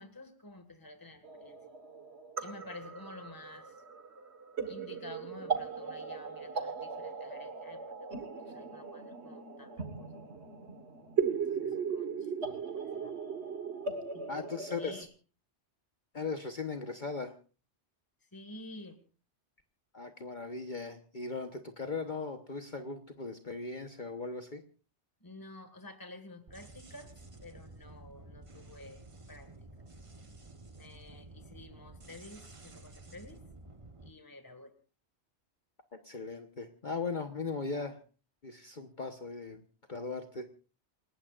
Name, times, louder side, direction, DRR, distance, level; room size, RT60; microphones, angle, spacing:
voice 1, 0.0-1.6 2.4-3.8 4.7-10.2 11.3-13.2 14.1-14.4 14.7-15.1 18.2-19.0 25.2-27.1 27.4-29.0 29.3-29.7 30.8-33.4 34.0-34.7, left 2 dB, 20° left, 6 dB, 1.9 m, -51 dB
sound 1, 1.2-15.0, right 5 dB, 70° right, 1.8 m, -38 dB
voice 2, 14.3-15.0 16.1-17.3 19.9-24.6 36.0-38.0 38.4-39.6 39.9-40.5, left 4 dB, 45° left, 5 dB, 1.3 m, -38 dB
sound 2, 26.5-34.1, right 2 dB, 30° right, 1.2 m, -52 dB
28.5 x 19.0 x 2.5 m, 0.37 s
omnidirectional pair, 1.2 m